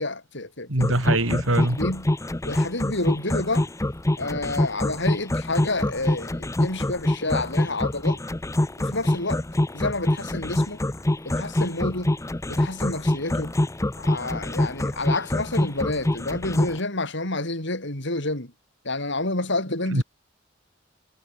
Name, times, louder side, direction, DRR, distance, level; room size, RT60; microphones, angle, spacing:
voice 1, 0.0-1.0 1.7-2.1 2.4-3.7 4.2-8.2 8.8-9.4 9.7-10.8 11.2-12.1 12.5-13.5 14.0-18.5 18.8-20.0, left 2 dB, 65° left, 6.3 m, -29 dB
voice 2, 0.7-1.8 19.9-20.0, right 1 dB, 80° right, 5.2 m, -22 dB
sound 1, 0.8-16.8, left 1 dB, 15° left, 0.7 m, -24 dB
head